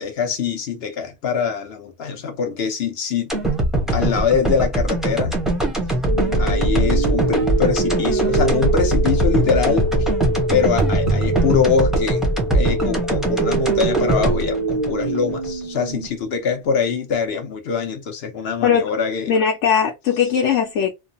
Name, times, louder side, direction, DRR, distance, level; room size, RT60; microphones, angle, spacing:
voice 1, 0.0-3.4 3.9-5.4 6.4-9.9 10.5-19.3, left 6 dB, 60° left, 0.9 m, -23 dB
sound 1, 3.3-15.5 15.9-16.0, right 2 dB, ahead, 0.6 m, -21 dB
sound 2, 6.1-16.1, right 2 dB, 50° right, 0.6 m, -24 dB
voice 2, 19.3-20.9, left 7 dB, 90° left, 1.0 m, -19 dB
3.1 x 2.0 x 2.6 m
omnidirectional pair, 1.2 m